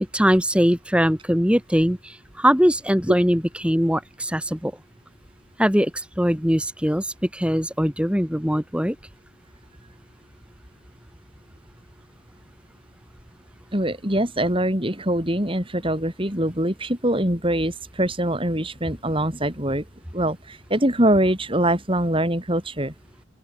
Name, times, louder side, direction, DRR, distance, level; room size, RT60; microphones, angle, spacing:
voice 1, 0.1-4.7 5.6-9.0, equal, 5° right, 5.7 m, -21 dB
voice 2, 13.7-19.8 20.1-22.9, right 1 dB, 25° right, 5.6 m, -23 dB
open air
head